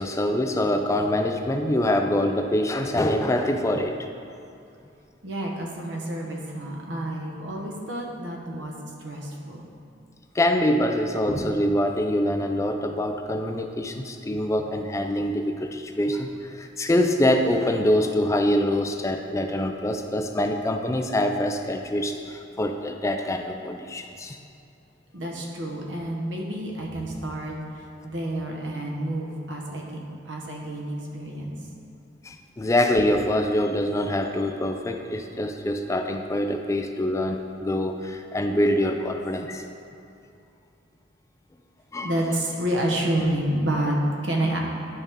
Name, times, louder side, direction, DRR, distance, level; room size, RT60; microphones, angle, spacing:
voice 1, 0.0-4.1 10.3-24.4 32.2-39.6 41.9-42.1, left 1 dB, 15° left, 5 dB, 0.4 m, -25 dB
voice 2, 5.2-9.7 25.1-31.7 42.0-43.9 44.2-44.6, right 1 dB, 75° right, -1 dB, 1.2 m, -29 dB
11.0 x 5.2 x 3.6 m, 2.6 s
head